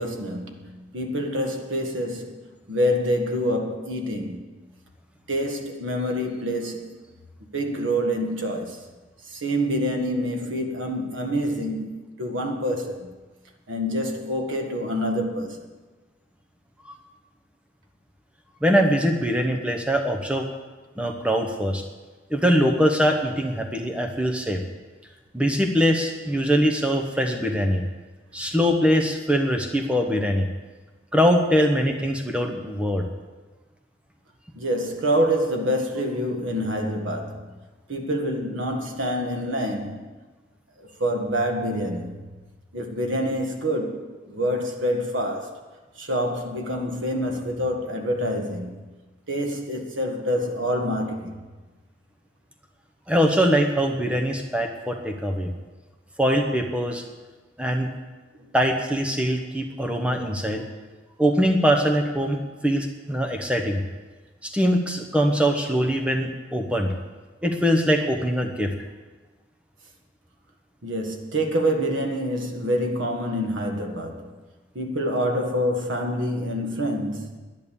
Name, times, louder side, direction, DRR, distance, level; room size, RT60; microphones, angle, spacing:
voice 1, 0.0-4.5 5.3-7.0 7.5-8.8 9.2-13.1 13.7-15.7 34.5-37.5 37.9-40.1 40.8-42.2 42.7-45.6 45.9-48.8 49.3-51.4 70.8-74.4 74.7-77.4, equal, 90° right, 1.7 m, -27 dB
voice 2, 18.6-20.5 21.0-21.8 22.3-24.6 25.3-27.8 28.3-30.5 31.1-33.1 53.1-55.5 56.2-57.0 57.6-57.9 58.5-60.6 61.2-62.4 62.6-63.8 64.4-66.9 67.4-68.7, equal, 5° right, 1.1 m, -22 dB
10.5 x 10.5 x 7.2 m
head